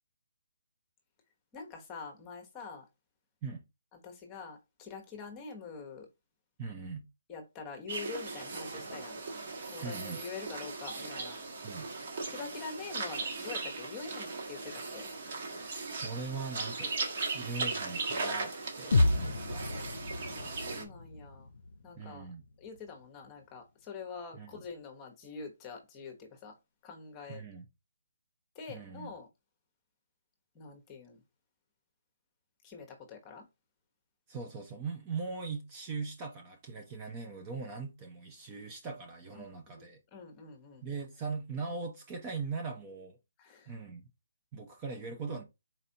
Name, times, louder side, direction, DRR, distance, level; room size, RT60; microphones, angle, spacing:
voice 1, 1.5-2.8 4.0-6.1 7.3-9.2 9.7-11.4 12.3-15.1 20.3-21.5 21.8-22.3 22.6-26.5 26.8-27.4 28.5-29.3 30.5-31.2 32.6-33.4 39.4-40.9 43.4-43.7, left 5 dB, 15° left, 1.0 m, -45 dB
voice 2, 6.6-7.1 9.8-10.2 11.6-11.9 15.6-16.9 17.3-19.6 22.0-22.4 24.3-24.6 27.3-27.7 28.7-29.1 34.3-40.0 40.8-43.2 43.7-44.0 44.5-45.4, right 4 dB, 20° right, 0.6 m, -40 dB
sound 1, 7.9-20.8, right 3 dB, 45° right, 1.5 m, -38 dB
sound 2, 18.9-22.9, left 2 dB, 75° left, 0.5 m, -31 dB
4.2 x 4.0 x 2.8 m
hypercardioid pair, 165°, 0 cm